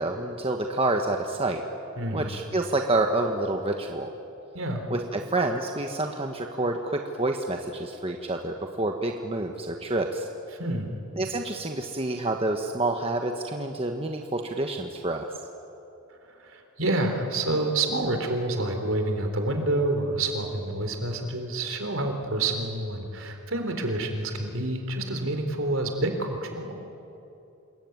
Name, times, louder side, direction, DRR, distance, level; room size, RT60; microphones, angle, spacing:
voice 1, 0.0-1.6 2.1-4.1 4.9-10.3 11.2-15.3, right 2 dB, 25° right, 3 dB, 1.3 m, -28 dB
voice 2, 2.0-2.3 4.5-4.9 10.6-10.9 16.4-26.7, right 2 dB, 65° right, 5 dB, 4.0 m, -28 dB
27.5 x 22.0 x 9.6 m, 2.8 s
head